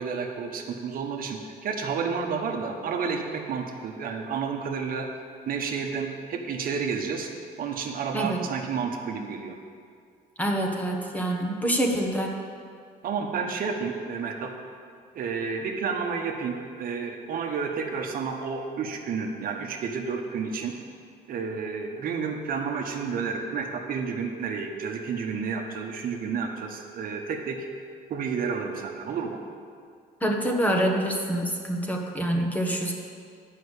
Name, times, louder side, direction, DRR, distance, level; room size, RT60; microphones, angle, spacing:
voice 1, 0.0-5.1 5.5-7.3 7.6-9.6 13.0-14.5 15.1-20.8 21.3-27.7 28.1-29.4, right 5 dB, 60° right, 2 dB, 1.1 m, -31 dB
voice 2, 8.1-8.4 10.4-12.3 30.2-32.9, right 1 dB, 10° left, 1 dB, 1.3 m, -26 dB
9.3 x 5.7 x 8.2 m, 2.2 s
cardioid pair, 110°, 17 cm